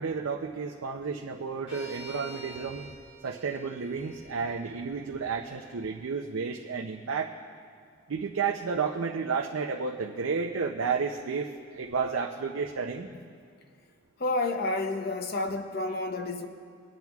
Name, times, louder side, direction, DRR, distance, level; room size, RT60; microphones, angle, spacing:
voice 1, 0.0-2.9 3.2-7.3 8.1-11.5 11.7-13.1, right 5 dB, 80° right, 2 dB, 0.5 m, -31 dB
sound 1, 1.7-5.8, right 1 dB, 30° left, 3.4 m, -49 dB
voice 2, 14.2-16.5, left 2 dB, 45° left, 7 dB, 0.7 m, -30 dB
23.5 x 9.0 x 2.4 m, 2.2 s
head